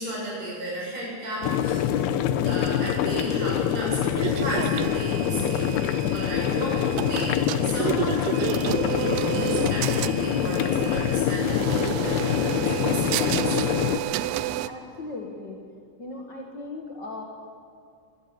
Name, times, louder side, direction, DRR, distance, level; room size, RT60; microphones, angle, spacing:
voice 1, 0.0-1.8 2.3-13.6, right 1 dB, 40° right, -4 dB, 8.4 m, -34 dB
sound 1, 1.4-14.0, left 10 dB, 75° left, 2.6 m, -25 dB
sound 2, 4.2-14.7, right 14 dB, 85° right, 2.2 m, -31 dB
voice 2, 14.6-15.6 16.0-17.2, left 2 dB, 60° left, 0 dB, 1.1 m, -37 dB
22.0 x 14.0 x 8.9 m, 2.4 s
omnidirectional pair, 5.0 m